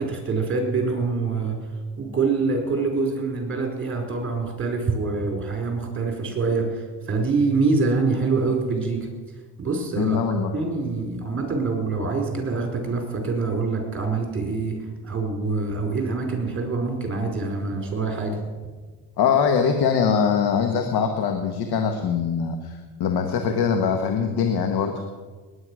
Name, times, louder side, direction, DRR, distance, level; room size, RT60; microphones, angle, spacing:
voice 1, 0.0-1.6 2.0-9.1 9.6-10.2 10.5-14.8 15.0-18.4, right 4 dB, 30° right, 2 dB, 4.8 m, -25 dB
voice 2, 10.0-10.5 19.2-24.9, left 6 dB, 75° left, 5 dB, 1.5 m, -22 dB
20.0 x 9.8 x 6.3 m, 1.4 s
cardioid pair, 95°, 39 cm